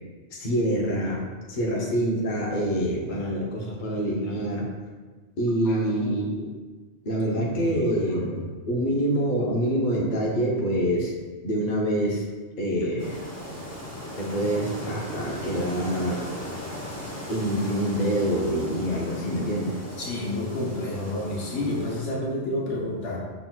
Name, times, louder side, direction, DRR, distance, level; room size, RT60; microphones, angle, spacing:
voice 1, 0.3-4.7 5.4-6.6 7.0-8.3 8.7-11.1 11.4-12.2 12.6-13.2 14.2-16.3 17.3-19.8, right 1 dB, 45° left, -3 dB, 0.9 m, -26 dB
voice 2, 5.6-6.2 7.3-8.5 20.0-23.2, left 1 dB, 80° left, -4 dB, 1.2 m, -30 dB
sound 1, 13.0-22.0, left 1 dB, 15° left, 0.6 m, -37 dB
5.7 x 4.0 x 2.3 m, 1.4 s
omnidirectional pair, 1.2 m